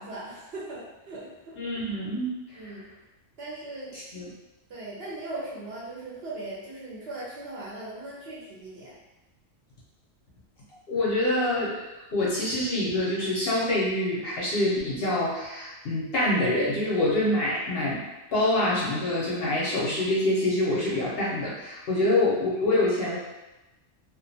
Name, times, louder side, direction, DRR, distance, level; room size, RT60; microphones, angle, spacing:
voice 1, 0.0-1.6 2.6-2.9 3.4-4.0 4.7-9.0 21.9-22.1, right 2 dB, 60° right, -6 dB, 0.7 m, -39 dB
voice 2, 1.6-2.3 4.1-4.2 10.9-18.0 18.3-23.2, left 1 dB, 60° left, -6 dB, 0.7 m, -26 dB
2.4 x 2.1 x 2.6 m, 1.0 s
omnidirectional pair, 1.3 m